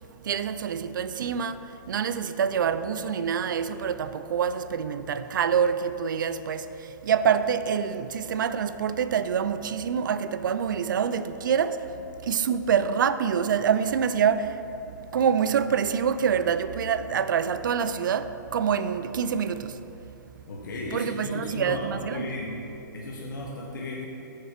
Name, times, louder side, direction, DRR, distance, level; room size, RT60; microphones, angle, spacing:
voice 1, 0.2-11.8 12.2-14.6 14.9-19.8 20.9-22.3, right 7 dB, 85° right, 0.4 m, -26 dB
voice 2, 20.5-22.6 22.9-24.1, left 2 dB, 85° left, 1.2 m, -35 dB
6.6 x 4.4 x 6.5 m
hypercardioid pair, 165°, 10 cm